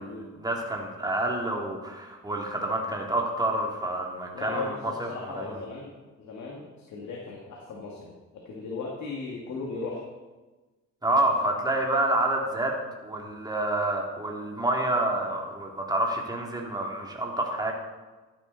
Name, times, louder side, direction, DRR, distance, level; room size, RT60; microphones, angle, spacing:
voice 1, 0.0-5.6 11.0-12.7 13.0-17.7, right 1 dB, 15° right, 0 dB, 2.8 m, -28 dB
voice 2, 4.3-5.9 6.2-10.1, left 3 dB, 70° left, -2 dB, 2.2 m, -37 dB
13.5 x 9.8 x 4.1 m, 1.2 s
cardioid pair, 90°, 30 cm